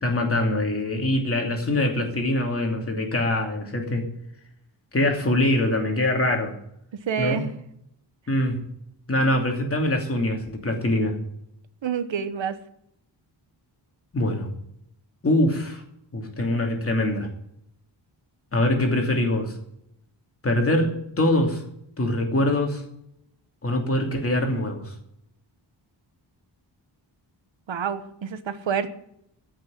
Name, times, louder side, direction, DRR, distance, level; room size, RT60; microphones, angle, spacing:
voice 1, 0.0-4.1 4.9-6.5 7.2-7.4 8.3-8.6 9.1-11.2 14.1-14.5 15.2-15.8 16.1-17.3 18.5-19.5 20.4-21.6 22.0-22.8 23.6-24.9, left 1 dB, 30° left, 2 dB, 2.7 m, -23 dB
voice 2, 6.9-7.5 11.8-12.6 27.7-28.9, right 7 dB, 80° right, 10 dB, 1.2 m, -28 dB
14.0 x 6.4 x 9.3 m, 0.75 s
wide cardioid pair, 165°, 45 cm